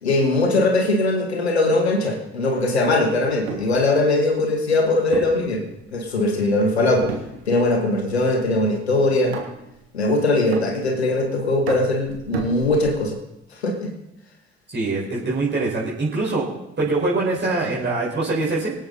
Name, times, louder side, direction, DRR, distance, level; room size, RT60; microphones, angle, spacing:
voice 1, 0.0-5.6 5.9-7.1 7.5-9.4 9.9-13.2 13.5-13.9, left 2 dB, 85° left, 3 dB, 2.0 m, -20 dB
sound 1, 3.5-3.8 5.1-6.2 6.9-7.8 8.1-8.5 9.3-9.8 10.5-11.2 11.7-13.1, right 5 dB, 80° right, 1.8 m, -33 dB
voice 2, 14.7-16.5 16.8-18.7, right 3 dB, 35° right, -5 dB, 4.9 m, -23 dB
24.0 x 8.7 x 4.1 m, 0.86 s
figure-of-eight pair, 45°, 32 cm